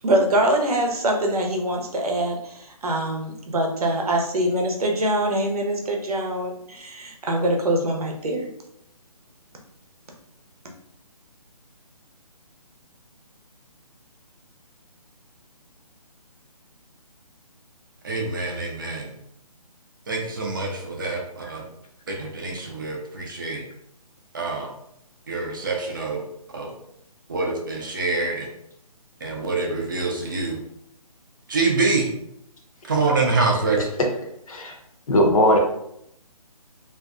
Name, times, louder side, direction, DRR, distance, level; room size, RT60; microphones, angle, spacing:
voice 1, 0.0-8.5, right 1 dB, 70° right, 2 dB, 0.7 m, -24 dB
voice 2, 18.0-19.1 20.1-21.6 22.1-23.6 24.3-24.7 25.3-26.2 26.5-26.7 27.3-28.5 29.2-30.6 31.5-32.1 32.9-33.8, right 3 dB, 35° right, 0 dB, 0.4 m, -25 dB
voice 3, 35.1-35.6, equal, 60° left, 2 dB, 0.7 m, -18 dB
2.5 x 2.2 x 2.4 m, 0.75 s
hypercardioid pair, 160°, 20 cm